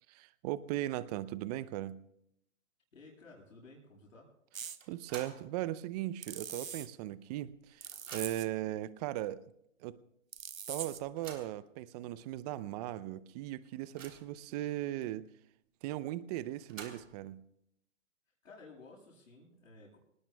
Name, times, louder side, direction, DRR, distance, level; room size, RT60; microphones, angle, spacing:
voice 1, 0.1-2.0 4.9-9.4 9.8-10.0 10.7-15.3 15.8-17.4, right 14 dB, 30° right, 16 dB, 0.7 m, -38 dB
voice 2, 2.9-4.3 18.4-20.0, left 3 dB, 80° left, -9 dB, 7.7 m, -55 dB
sound 1, 4.5-4.8 6.2-6.9 7.8-8.5 10.3-11.1, right 7 dB, 90° right, 1.0 m, -42 dB
sound 2, 4.8-5.5 5.9-6.0 7.1-7.2 7.5-8.6 9.3-9.4 9.8-9.9 10.9-11.6 12.3-12.4 12.8-12.9 13.4-14.4 16.4-17.3, right 6 dB, 70° right, 3.5 m, -50 dB
25.0 x 19.5 x 2.3 m, 0.76 s
hypercardioid pair, 125°, 40 cm